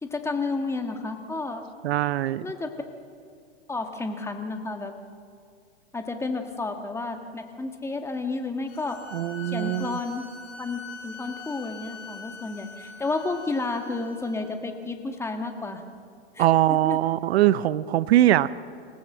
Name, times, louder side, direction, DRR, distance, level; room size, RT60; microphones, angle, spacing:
voice 1, 0.0-1.7 2.4-2.7 3.7-4.9 5.9-9.0 9.5-10.3 10.6-15.8 16.3-17.0, left 3 dB, 10° left, 5 dB, 1.6 m, -31 dB
voice 2, 1.8-2.5 9.1-10.0 16.4-18.5, right 13 dB, 70° right, 16 dB, 0.8 m, -22 dB
sound 1, 8.7-14.4, left 4 dB, 60° left, 7.7 m, -43 dB
26.5 x 16.5 x 7.8 m, 2.3 s
hypercardioid pair, 140°, 33 cm